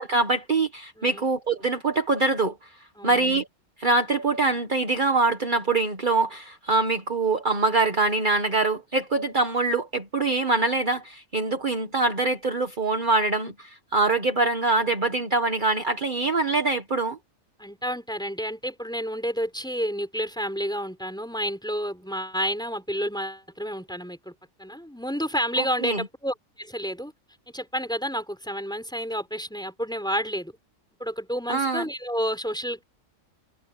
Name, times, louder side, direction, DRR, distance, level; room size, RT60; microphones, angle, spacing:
voice 1, 0.0-2.5 3.0-3.5 3.8-17.2 25.6-26.0 31.5-31.8, right 3 dB, 40° right, 1.6 m, -24 dB
voice 2, 1.0-1.3 3.0-3.4 17.6-24.3 24.6-27.1 27.5-30.6 31.0-32.8, equal, 5° left, 4.5 m, -30 dB
omnidirectional pair, 1.3 m